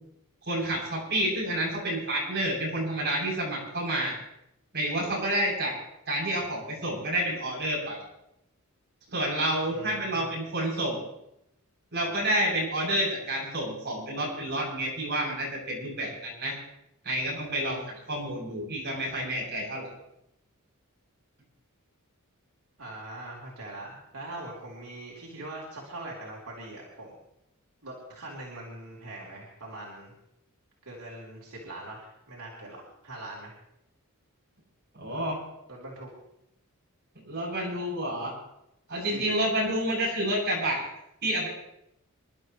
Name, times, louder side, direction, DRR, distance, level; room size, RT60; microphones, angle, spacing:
voice 1, 0.5-4.1 4.7-5.8 6.1-8.0 9.1-11.0 11.9-16.5 17.0-17.8 18.1-19.9 34.9-35.4 37.2-38.3 38.9-40.9 41.2-41.5, right 1 dB, 50° right, -4 dB, 8.0 m, -29 dB
voice 2, 9.7-10.4 22.8-27.1 27.8-30.1 30.8-33.6 35.7-36.1 38.9-39.4, right 2 dB, 85° right, -4 dB, 3.8 m, -42 dB
27.5 x 12.0 x 3.2 m, 0.83 s
head